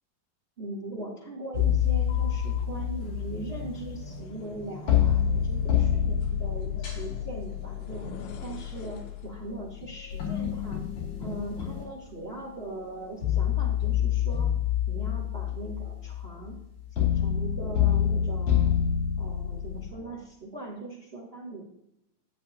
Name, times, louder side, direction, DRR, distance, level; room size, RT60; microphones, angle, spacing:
voice 1, 0.6-8.0 8.4-10.8 11.2-14.5 14.9-16.5 16.9-18.8 19.2-21.6, right 2 dB, 45° right, -2 dB, 0.7 m, -40 dB
sound 1, 1.5-4.6 4.9-12.4 13.2-19.9, left 9 dB, 50° left, 3.7 m, -27 dB
sound 2, 1.9-9.4, left 3 dB, 80° left, 2.9 m, -45 dB
12.5 x 8.3 x 2.8 m, 0.80 s
omnidirectional pair, 4.5 m